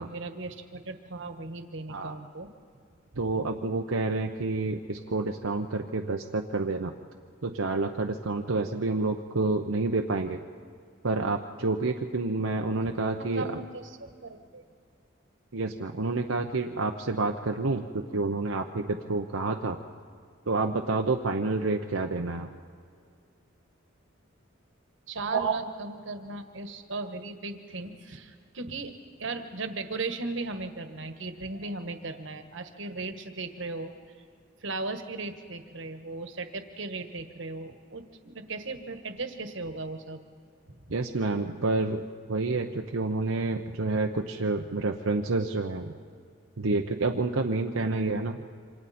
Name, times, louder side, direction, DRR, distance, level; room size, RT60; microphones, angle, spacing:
voice 1, 0.0-2.5 3.1-3.2 12.8-12.9 13.3-14.6 25.1-28.9 29.2-33.9 34.6-40.2 40.7-40.8 47.8-48.1, right 3 dB, 65° right, 7 dB, 1.5 m, -37 dB
voice 2, 3.2-6.9 7.4-10.4 11.0-13.5 15.5-19.8 20.5-22.5 25.3-25.6 40.9-42.0 42.3-45.9 46.6-48.4, right 3 dB, 85° right, 3 dB, 0.9 m, -29 dB
28.0 x 25.5 x 4.3 m, 2.2 s
head